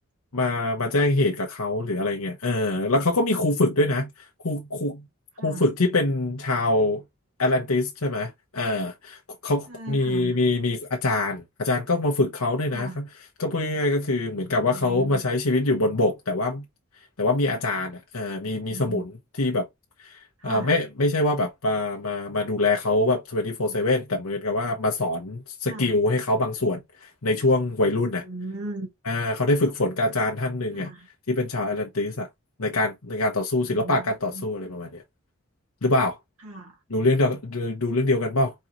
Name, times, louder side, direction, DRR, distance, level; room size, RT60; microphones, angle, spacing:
voice 1, 0.3-5.1 5.4-7.0 7.4-13.1 13.4-16.6 17.2-19.1 19.4-19.7 20.0-28.2 29.1-30.9 31.3-32.3 32.6-35.0 35.8-36.2 36.9-38.5, left 2 dB, 85° left, 1.0 m, -24 dB
voice 2, 9.7-10.4 12.7-13.0 14.6-15.2 18.3-19.0 20.4-20.7 23.6-23.8 25.7-25.9 28.2-28.9 30.7-31.1 33.6-34.5 36.4-36.8, right 2 dB, 90° right, 2.1 m, -38 dB
4.5 x 3.9 x 3.0 m
head